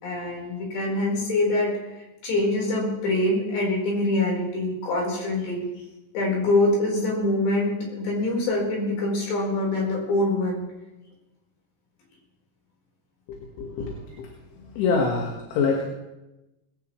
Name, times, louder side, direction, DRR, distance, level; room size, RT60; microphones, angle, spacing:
voice 1, 0.0-1.7 2.2-5.6 6.1-10.6, left 2 dB, 60° left, -2 dB, 6.4 m, -24 dB
voice 2, 13.3-14.3 14.6-15.9, left 4 dB, 75° left, 0 dB, 3.9 m, -26 dB
19.5 x 16.0 x 3.2 m, 1.0 s
omnidirectional pair, 5.6 m